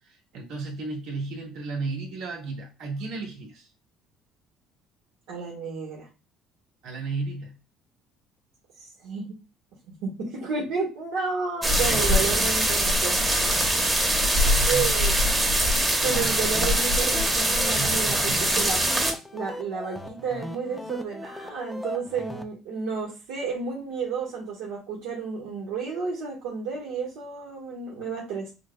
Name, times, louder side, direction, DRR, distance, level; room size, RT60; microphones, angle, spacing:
voice 1, 0.0-3.7 6.8-7.5 11.8-12.2 12.7-12.8 14.5-14.9 15.6-16.6 17.7-18.5, right 3 dB, 70° right, 1.7 m, -35 dB
voice 2, 5.3-6.1 8.8-9.3 10.0-13.6 14.6-15.1 15.7-18.8 19.3-28.5, right 5 dB, 90° right, 1.4 m, -31 dB
sound 1, 11.6-19.1, right 1 dB, 15° right, 1.0 m, -22 dB
sound 2, 16.3-22.4, left 1 dB, 5° left, 0.5 m, -38 dB
6.3 x 2.3 x 2.2 m
cardioid pair, 125°, 0 cm